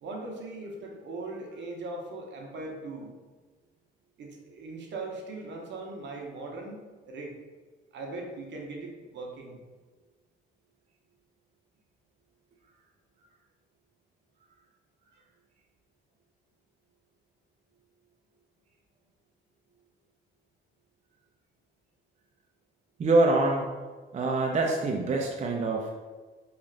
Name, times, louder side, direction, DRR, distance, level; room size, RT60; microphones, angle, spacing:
voice 1, 0.0-3.1 4.2-7.3 7.9-9.6, right 2 dB, 65° right, 1 dB, 0.8 m, -39 dB
voice 2, 23.0-23.7 24.1-25.9, right 2 dB, 35° right, 0 dB, 0.5 m, -25 dB
3.1 x 2.4 x 3.8 m, 1.4 s
cardioid pair, 90°, 20 cm